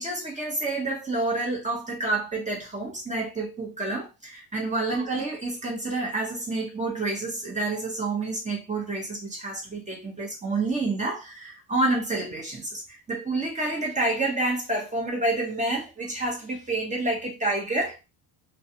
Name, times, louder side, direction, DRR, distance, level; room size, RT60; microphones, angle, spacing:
voice 1, 0.0-18.0, right 2 dB, 15° right, 0.9 m, -28 dB
2.3 x 2.3 x 2.8 m
cardioid pair, 125°, 50 cm